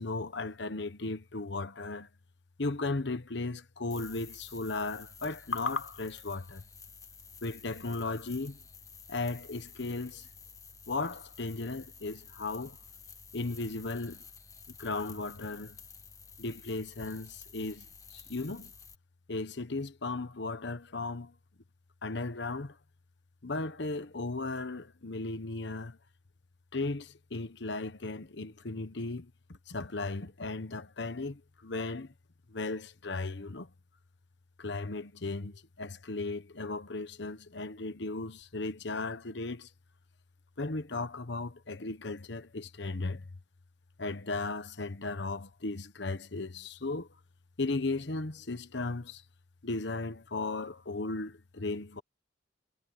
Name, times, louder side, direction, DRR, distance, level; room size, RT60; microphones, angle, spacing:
voice 1, 0.0-2.1 2.6-6.6 7.4-8.6 9.1-10.3 10.9-12.8 13.3-14.2 14.7-15.8 16.4-18.7 19.3-21.3 22.0-22.8 23.4-26.0 26.7-29.3 29.7-32.1 32.5-33.7 34.6-39.7 40.6-43.3 44.0-47.1 47.6-49.2 49.6-52.0, left 3 dB, 60° left, 1.2 m, -36 dB
sound 1, 3.9-18.9, left 5 dB, 15° left, 1.4 m, -52 dB
head